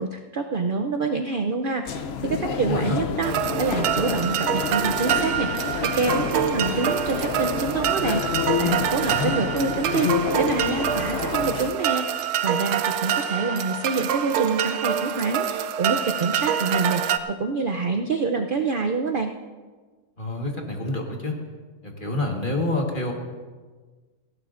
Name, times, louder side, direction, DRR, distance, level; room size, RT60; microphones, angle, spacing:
voice 1, 0.0-3.3 3.6-10.1 10.3-19.3, right 4 dB, 55° right, 4 dB, 0.6 m, -27 dB
sound 1, 1.9-11.7, left 7 dB, 60° left, 0.7 m, -28 dB
voice 2, 2.6-3.0 9.1-9.3 20.2-21.4 21.8-23.1, left 2 dB, 35° left, 1 dB, 1.6 m, -27 dB
sound 2, 3.2-17.2, right 9 dB, 90° right, 1.1 m, -26 dB
18.5 x 16.5 x 2.5 m, 1.4 s
omnidirectional pair, 1.6 m